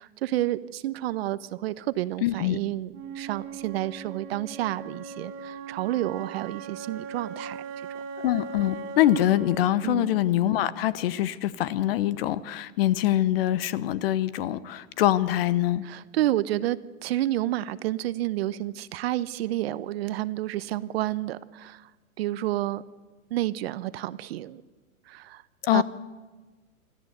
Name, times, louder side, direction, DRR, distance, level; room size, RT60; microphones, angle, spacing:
voice 1, 0.0-7.6 9.8-10.1 15.8-21.9 22.2-22.8 23.3-24.6 25.1-25.4 25.7-25.8, right 14 dB, 45° right, 16 dB, 0.8 m, -30 dB
voice 2, 2.2-2.6 8.2-15.8 25.6-25.8, left 13 dB, 45° left, 18 dB, 0.9 m, -24 dB
Wind instrument woodwind instrument, 2.9-10.9, right 5 dB, 30° right, 2.1 m, -40 dB
25.5 x 14.5 x 8.1 m, 1.3 s
hypercardioid pair, 140°, 41 cm